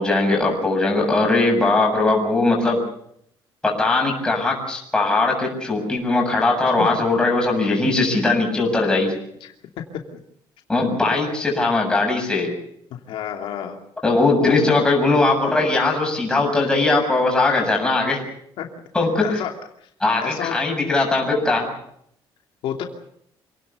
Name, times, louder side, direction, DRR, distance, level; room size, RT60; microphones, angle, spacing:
voice 1, 0.0-2.8 3.6-9.1 10.7-12.5 14.0-18.2 18.9-19.2 20.0-21.7, left 3 dB, 10° left, 0 dB, 7.4 m, -20 dB
voice 2, 12.9-13.8 14.4-14.6 16.6-16.7 18.6-18.7 19.2-19.5 19.8-19.9 20.2-20.5 22.6-22.8, left 10 dB, 70° left, 3 dB, 2.9 m, -28 dB
27.5 x 18.5 x 6.9 m, 0.71 s
cardioid pair, 175°, 9 cm